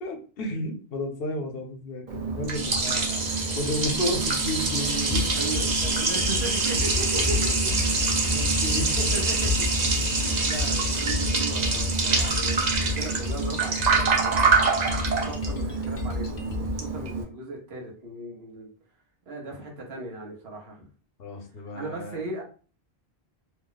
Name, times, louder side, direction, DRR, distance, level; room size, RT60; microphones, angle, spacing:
voice 1, 0.0-3.0 3.3-5.4 7.9-8.0 8.3-9.1 21.2-22.2, left 1 dB, 70° left, 0.9 m, -32 dB
Liquid, 2.1-17.2, right 4 dB, 50° right, 0.7 m, -25 dB
voice 2, 2.8-3.3 5.1-8.0 8.6-9.7 10.2-14.8 15.2-18.7 19.3-20.9 21.7-22.4, right 2 dB, 75° right, 1.2 m, -37 dB
sound 1, 4.8-16.8, left 4 dB, 45° left, 0.6 m, -31 dB
2.9 x 2.1 x 3.8 m
omnidirectional pair, 1.1 m